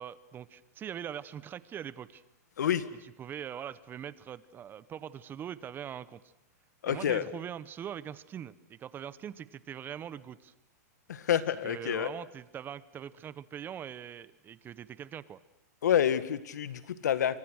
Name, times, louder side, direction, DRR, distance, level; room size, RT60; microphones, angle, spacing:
voice 1, 0.0-2.2 3.2-6.2 6.8-10.5 11.6-15.4, right 9 dB, 20° right, 17 dB, 1.0 m, -42 dB
voice 2, 6.8-7.3 11.1-12.1 15.8-17.4, left 9 dB, 85° left, 13 dB, 1.8 m, -28 dB
29.0 x 24.5 x 6.5 m, 0.87 s
hypercardioid pair, 135°, 9 cm